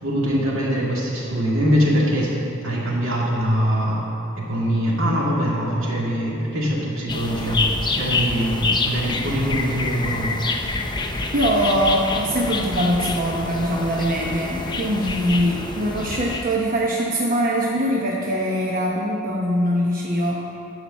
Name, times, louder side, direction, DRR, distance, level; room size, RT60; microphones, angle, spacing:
voice 1, 0.0-2.3 2.6-4.0 4.4-7.6 7.9-10.3, equal, 70° right, -4 dB, 2.2 m, -22 dB
sound 1, 7.1-16.4, left 3 dB, 20° left, 0.6 m, -27 dB
voice 2, 11.3-20.4, equal, 40° right, -3 dB, 0.9 m, -22 dB
11.5 x 4.9 x 7.4 m, 2.8 s
head